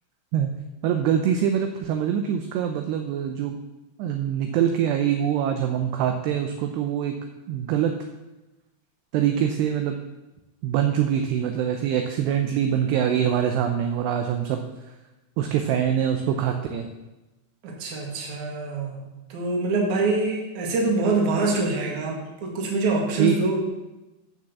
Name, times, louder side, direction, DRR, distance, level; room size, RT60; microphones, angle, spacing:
voice 1, 0.8-3.6 4.0-7.2 7.5-7.9 9.1-10.0 10.6-14.9 15.4-16.9 23.2-23.4, right 9 dB, 80° right, 5 dB, 2.5 m, -24 dB
voice 2, 17.6-19.0 19.3-23.6, right 3 dB, 55° right, 0 dB, 2.5 m, -25 dB
10.5 x 6.2 x 7.0 m, 1.1 s
omnidirectional pair, 5.5 m